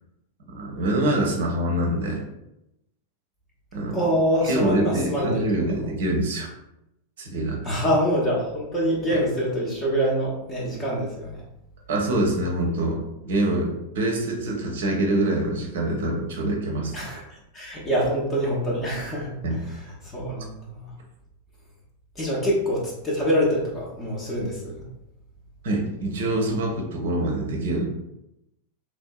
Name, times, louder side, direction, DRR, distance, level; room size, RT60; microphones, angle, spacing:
voice 1, 0.5-2.2 3.7-4.0 4.4-6.5 7.2-7.6 9.1-9.2 11.9-16.9 19.4-19.6 25.6-27.9, right 1 dB, 55° right, 0 dB, 0.6 m, -25 dB
voice 2, 3.9-5.4 7.6-11.4 16.9-17.2 17.5-19.3 19.6-20.9 22.2-24.8, equal, 20° left, -5 dB, 0.8 m, -25 dB
3.0 x 2.6 x 2.3 m, 0.85 s
figure-of-eight pair, 90°, 0 cm